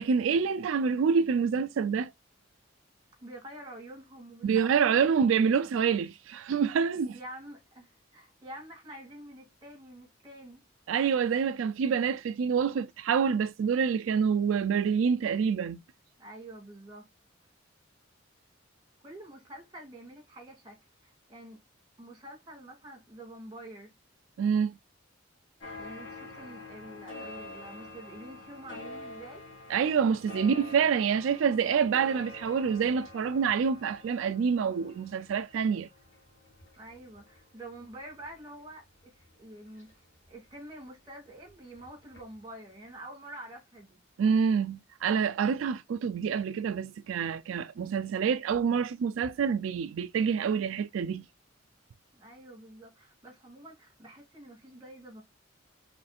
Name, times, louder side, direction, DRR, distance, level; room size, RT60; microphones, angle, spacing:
voice 1, 0.0-2.1 4.4-7.2 10.9-15.8 24.4-24.8 29.7-35.9 44.2-51.3, right 6 dB, 90° right, 0.3 m, -27 dB
voice 2, 3.2-5.1 7.1-10.6 16.2-17.1 19.0-21.6 22.0-23.9 25.8-29.4 36.8-39.1 39.4-39.9 40.3-44.0 52.1-55.2, right 1 dB, 25° right, 2.0 m, -47 dB
sound 1, 25.6-40.7 41.1-42.5 42.7-42.8, left 2 dB, 75° left, 1.9 m, -47 dB
4.1 x 3.3 x 2.3 m
head